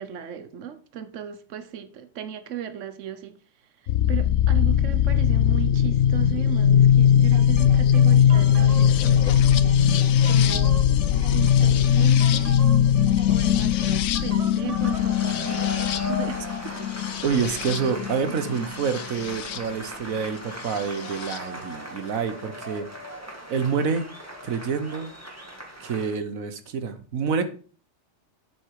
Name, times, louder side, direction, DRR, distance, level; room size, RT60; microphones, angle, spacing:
voice 1, 0.0-3.4 3.8-9.9 10.2-10.8 11.3-12.5 13.3-17.6, right 10 dB, 65° right, 1.3 m, -36 dB
sound 1, 3.9-19.6 20.8-21.4, left 9 dB, 90° left, 1.1 m, -20 dB
sound 2, 7.3-15.1, right 4 dB, 35° right, 0.8 m, -41 dB
sound 3, 14.5-26.1, equal, 10° right, 1.9 m, -38 dB
voice 2, 17.2-22.9 23.5-24.1 24.4-25.1 25.8-27.4, right 6 dB, 85° right, 1.5 m, -27 dB
8.1 x 7.9 x 4.8 m
omnidirectional pair, 1.4 m